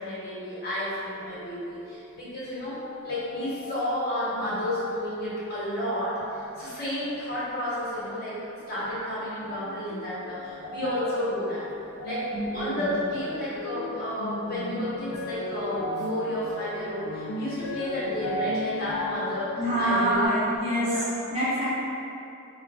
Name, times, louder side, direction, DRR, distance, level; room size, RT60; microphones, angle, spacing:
voice 1, 0.0-8.4 8.7-11.6 12.0-19.5 19.8-20.3 20.7-21.1, left 1 dB, 45° left, -10 dB, 1.4 m, -31 dB
sound 1, 1.2-2.2 2.8-3.8 4.4-5.1 5.5-6.8 7.1-8.0 8.6-9.1 9.4-20.2, left 1 dB, 85° left, 0.5 m, -36 dB
voice 2, 12.3-13.0 19.6-20.9 21.3-21.6, right 1 dB, 30° right, -11 dB, 1.3 m, -26 dB
3.4 x 2.5 x 4.2 m, 2.8 s
head